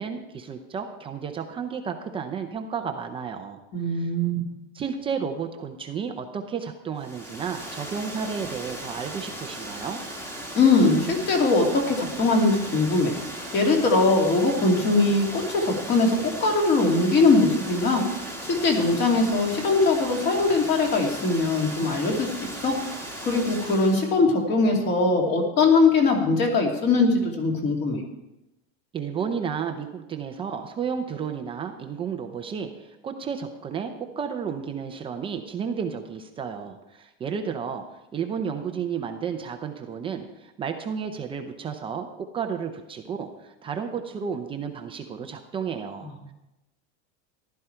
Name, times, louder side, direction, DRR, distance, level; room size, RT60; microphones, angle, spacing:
voice 1, 0.0-3.6 3.9-4.1 4.7-10.0 28.9-37.8 38.1-46.3, right 6 dB, 15° right, 5 dB, 0.6 m, -32 dB
voice 2, 3.7-4.4 10.5-13.2 13.5-18.0 18.5-22.3 22.6-22.8 23.2-28.0 46.0-46.1, left 3 dB, 30° left, 1 dB, 2.5 m, -21 dB
Water, 7.0-24.2, right 1 dB, 10° left, 1.6 m, -37 dB
15.0 x 12.0 x 4.5 m, 0.94 s
supercardioid pair, 175°, 35 cm